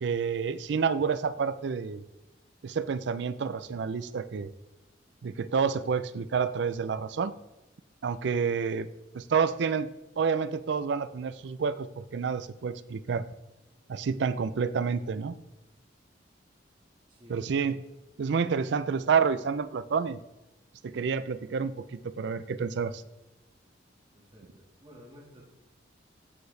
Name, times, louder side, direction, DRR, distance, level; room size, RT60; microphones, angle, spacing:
voice 1, 0.0-2.0 2.6-4.5 5.2-7.3 8.0-8.9 9.1-9.9 10.2-13.2 13.9-15.4 17.3-17.8 18.2-20.2 20.8-23.0, right 6 dB, 65° right, 14 dB, 0.4 m, -29 dB
voice 2, 17.1-17.4 24.1-25.4, equal, 25° right, -5 dB, 1.7 m, -53 dB
13.5 x 4.6 x 3.2 m, 0.98 s
head